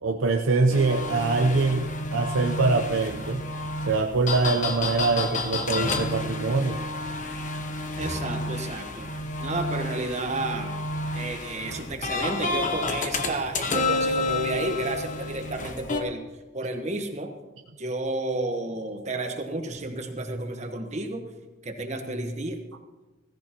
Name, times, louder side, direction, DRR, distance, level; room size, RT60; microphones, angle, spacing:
voice 1, 0.0-3.5 3.9-6.8, right 3 dB, 80° right, 3 dB, 0.7 m, -24 dB
sound 1, 0.7-16.0, left 2 dB, 40° left, 1.0 m, -30 dB
voice 2, 8.0-9.1 9.4-10.8 11.1-16.2 16.5-17.3 17.8-21.3 21.6-22.6, right 2 dB, 35° right, 5 dB, 1.2 m, -31 dB
16.5 x 15.0 x 3.0 m, 1.2 s
head